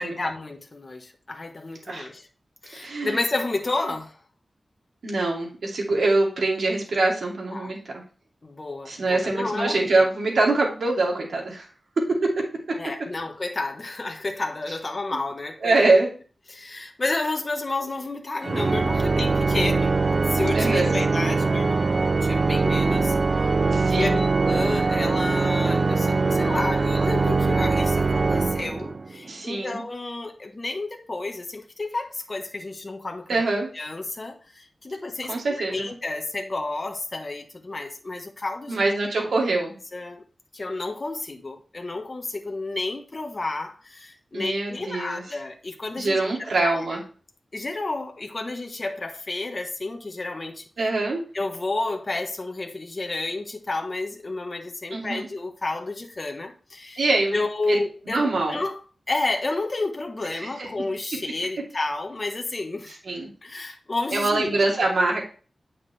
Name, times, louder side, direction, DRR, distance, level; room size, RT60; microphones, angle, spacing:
voice 1, 0.0-2.3 2.6-4.2 7.5-7.7 8.4-10.0 12.7-15.9 16.5-20.0 20.3-23.1 23.9-33.4 33.7-38.8 39.9-40.2 40.5-47.0 47.5-50.6 51.3-57.0 57.3-58.8 59.1-63.0 63.4-64.6, left 2 dB, 35° left, 1.2 m, -31 dB
voice 2, 2.7-3.2 5.0-8.0 8.8-11.7 12.0-12.4 15.6-16.1 20.5-21.0 23.7-24.2 29.2-29.8 33.3-33.7 35.3-35.9 38.7-39.8 44.3-45.2 45.9-47.0 50.8-51.2 54.9-55.3 57.0-57.8 58.0-58.6 60.3-60.7 63.0-63.3 64.1-65.2, right 2 dB, 75° right, 2.6 m, -24 dB
Organ, 18.4-29.2, right 3 dB, 45° right, 0.4 m, -22 dB
8.8 x 5.9 x 3.4 m
wide cardioid pair, 110°, 0 cm